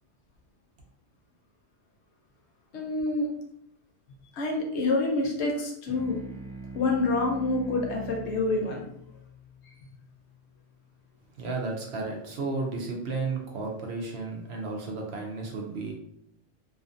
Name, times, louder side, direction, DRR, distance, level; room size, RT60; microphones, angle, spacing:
voice 1, 2.7-3.3 4.3-6.2 6.7-8.8, left 2 dB, 65° left, 0 dB, 0.9 m, -27 dB
sound 1, 5.9-10.7, right 1 dB, 50° left, 0.3 m, -43 dB
voice 2, 11.4-15.9, right 3 dB, 65° right, 0 dB, 0.7 m, -33 dB
2.5 x 2.5 x 2.4 m, 0.75 s
omnidirectional pair, 1.3 m